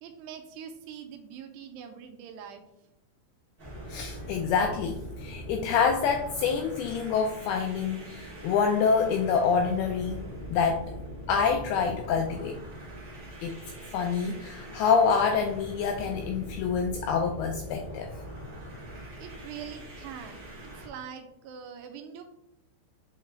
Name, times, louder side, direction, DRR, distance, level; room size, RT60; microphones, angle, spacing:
voice 1, 0.0-2.6 19.2-22.2, right 8 dB, 85° right, 6 dB, 2.7 m, -43 dB
sound 1, 3.6-20.9, equal, 55° right, 1.0 m, -42 dB
voice 2, 3.9-10.8 11.3-12.6 13.4-13.6 13.9-18.1, left 6 dB, 85° left, 3 dB, 2.3 m, -27 dB
7.9 x 3.2 x 3.8 m, 0.83 s
omnidirectional pair, 5.0 m